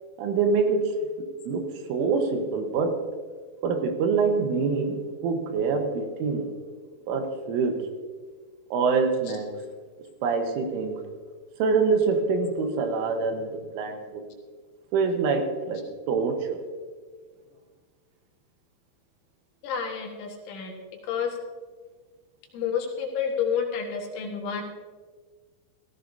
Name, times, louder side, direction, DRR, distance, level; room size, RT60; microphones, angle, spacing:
voice 1, 0.2-1.0 1.5-3.0 3.6-6.5 7.1-7.9 8.7-9.6 10.2-11.1 11.6-14.2 14.9-16.6, right 4 dB, 80° right, 5 dB, 3.7 m, -25 dB
voice 2, 19.6-20.8 21.0-21.4 22.5-24.6, left 7 dB, 75° left, 0 dB, 3.9 m, -29 dB
16.5 x 15.0 x 2.8 m, 1.5 s
omnidirectional pair, 5.6 m